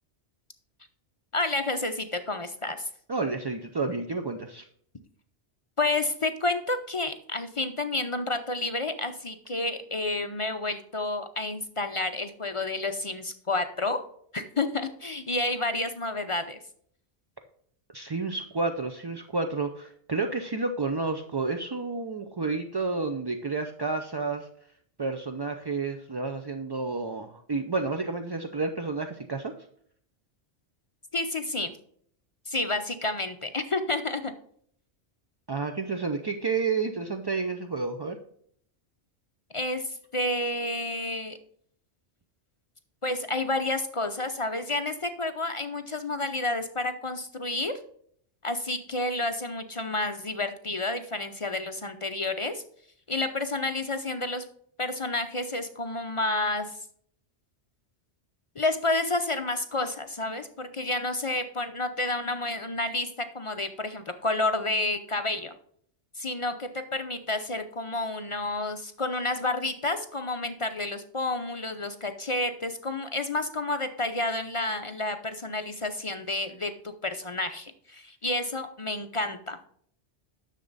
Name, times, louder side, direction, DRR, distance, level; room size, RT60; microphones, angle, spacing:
voice 1, 1.3-2.9 5.8-14.0 14.3-16.6 31.1-31.7 32.5-34.3 39.5-41.4 43.0-47.7 48.4-52.6 53.1-54.4 54.8-56.8 58.6-65.5 66.1-79.6, left 2 dB, 40° left, 8 dB, 0.5 m, -30 dB
voice 2, 3.1-4.7 17.9-24.5 25.0-29.5 35.5-38.2, right 3 dB, 35° right, 6 dB, 0.4 m, -30 dB
10.0 x 6.6 x 4.0 m, 0.63 s
omnidirectional pair, 1.2 m